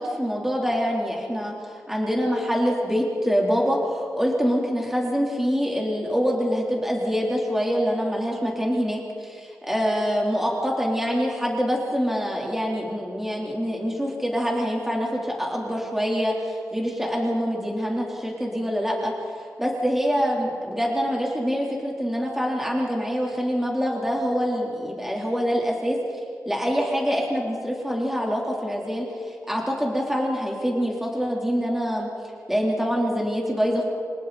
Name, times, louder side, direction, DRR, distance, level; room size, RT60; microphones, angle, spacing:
voice 1, 0.0-1.5 1.9-19.1 19.6-26.0 26.5-32.1 32.5-33.8, equal, 5° right, -3 dB, 4.0 m, -25 dB
30.0 x 27.0 x 4.4 m, 2.2 s
wide cardioid pair, 130°, 6 cm